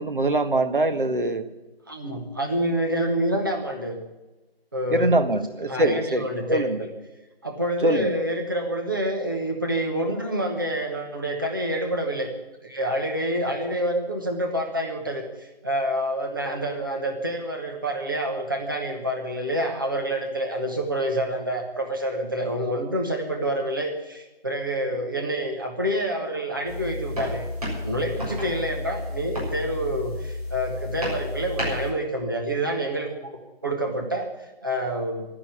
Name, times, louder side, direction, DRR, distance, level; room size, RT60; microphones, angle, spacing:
voice 1, 0.0-1.4 4.9-6.2 6.5-6.8 7.8-8.1, right 1 dB, 55° right, 9 dB, 1.4 m, -23 dB
voice 2, 1.9-4.0 4.7-5.4 5.7-6.9 7.4-12.3 12.6-27.5 27.8-33.3 33.6-35.3, right 1 dB, 20° right, 2 dB, 1.1 m, -27 dB
sound 1, 26.6-31.9, left 1 dB, 40° right, 6.7 m, -31 dB
12.5 x 10.0 x 9.9 m, 1.1 s
figure-of-eight pair, 175°, 31 cm